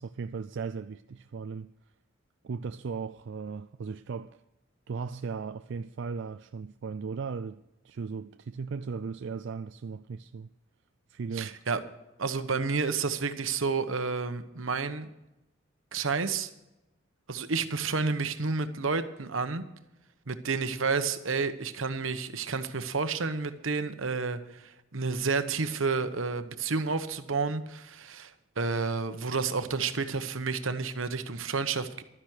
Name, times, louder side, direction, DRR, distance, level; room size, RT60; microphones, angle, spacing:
voice 1, 0.0-1.7 2.4-4.4 4.9-7.6 7.8-10.5 11.1-11.5, right 5 dB, 65° right, 0.4 m, -37 dB
voice 2, 11.3-11.8 12.2-15.1 15.9-16.5 17.3-19.6 20.3-32.0, right 4 dB, 85° right, 1.0 m, -30 dB
12.5 x 10.0 x 6.3 m
head